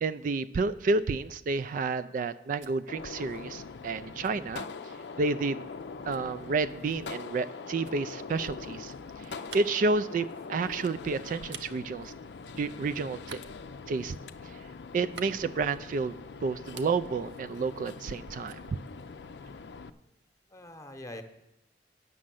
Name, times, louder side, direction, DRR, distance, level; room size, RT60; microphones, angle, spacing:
voice 1, 0.0-4.7 5.2-5.7 6.1-12.1 12.6-13.4 13.9-14.2 14.9-16.2 16.4-18.6, right 3 dB, 50° right, 13 dB, 0.3 m, -30 dB
sound 1, 2.2-5.2 6.1-12.8 13.2-16.2 16.5-18.2 18.5-19.8, right 6 dB, 85° right, 0.7 m, -52 dB
Gunshot gunfire, 2.9-19.9, left 4 dB, 75° left, 0.5 m, -43 dB
voice 2, 20.5-21.2, left 1 dB, 20° left, 6 dB, 0.9 m, -45 dB
9.6 x 6.4 x 7.6 m, 0.90 s
head